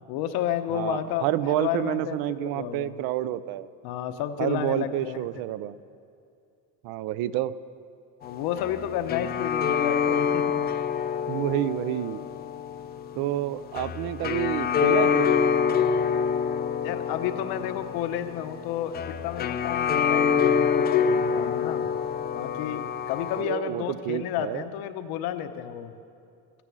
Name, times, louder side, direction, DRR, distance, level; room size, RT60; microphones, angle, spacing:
voice 1, 0.1-3.0 3.8-5.2 8.2-10.7 16.8-21.9 22.3-25.9, left 10 dB, 80° left, 8 dB, 1.0 m, -31 dB
voice 2, 0.7-3.7 4.4-5.8 6.8-7.5 11.3-12.2 13.1-15.4 23.4-24.6, right 14 dB, 75° right, 16 dB, 0.6 m, -29 dB
sound 1, 8.2-23.4, left 7 dB, 30° left, 0.4 m, -26 dB
14.5 x 10.0 x 7.5 m, 2.5 s
cardioid pair, 165°, 36 cm